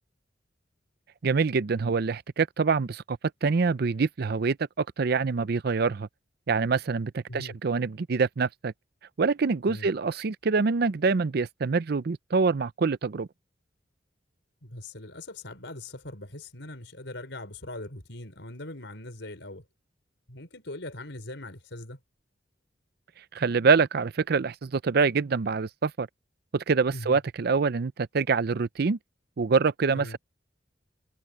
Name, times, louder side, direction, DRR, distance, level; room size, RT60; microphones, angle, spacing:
voice 1, 1.2-6.1 6.5-8.7 9.2-13.3 23.3-26.1 26.5-29.0 29.4-30.2, right 4 dB, 60° right, 0.5 m, -25 dB
voice 2, 14.6-19.6 20.3-22.0 26.9-27.2 29.9-30.2, left 1 dB, 75° left, 5.2 m, -41 dB
head